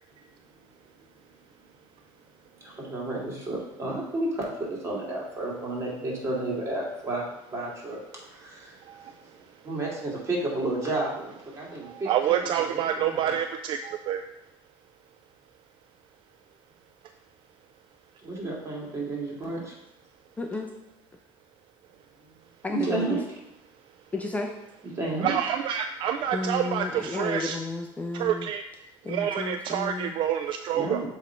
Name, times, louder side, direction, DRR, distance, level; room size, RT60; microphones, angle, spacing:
voice 1, 2.6-7.2 7.5-8.0 8.3-8.8 9.6-12.4 12.7-13.3 18.2-19.8 22.7-23.2 25.0-25.4 30.7-31.0, right 2 dB, 25° right, -3 dB, 2.1 m, -31 dB
voice 2, 11.8-14.2 25.2-27.6 28.1-28.6 29.1-31.0, right 9 dB, 55° right, 7 dB, 0.3 m, -27 dB
voice 3, 20.4-20.7 22.6-23.2 24.1-24.5 26.3-28.5 29.0-30.1 30.8-31.0, left 3 dB, 15° left, 3 dB, 0.5 m, -32 dB
7.3 x 3.1 x 4.4 m, 0.88 s
supercardioid pair, 110°, 10 cm